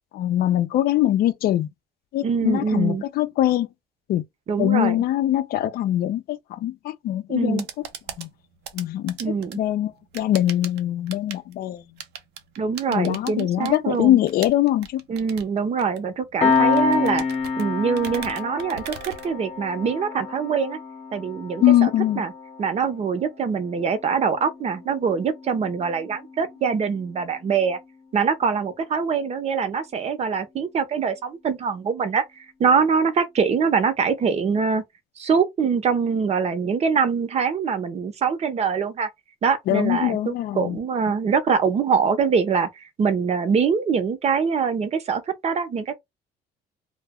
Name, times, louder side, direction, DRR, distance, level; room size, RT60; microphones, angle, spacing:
voice 1, 0.1-1.7 2.1-3.7 4.1-4.2 4.6-7.6 8.2-8.3 8.7-11.8 12.9-15.0 21.6-22.3 39.7-40.8, left 13 dB, 65° left, 0.4 m, -22 dB
voice 2, 2.2-3.0 4.5-5.0 7.3-7.7 9.2-9.6 12.6-14.2 15.1-17.2 17.6-20.8 21.1-21.9 22.2-22.3 22.6-27.8 28.1-32.2 32.6-34.8 35.2-39.1 39.4-45.9, right 6 dB, 40° right, 0.6 m, -23 dB
sound 1, 7.3-19.9, right 8 dB, 80° right, 0.6 m, -41 dB
Piano, 16.4-27.5, left 5 dB, 45° left, 0.8 m, -29 dB
2.2 x 2.0 x 3.5 m
cardioid pair, 110°, 17 cm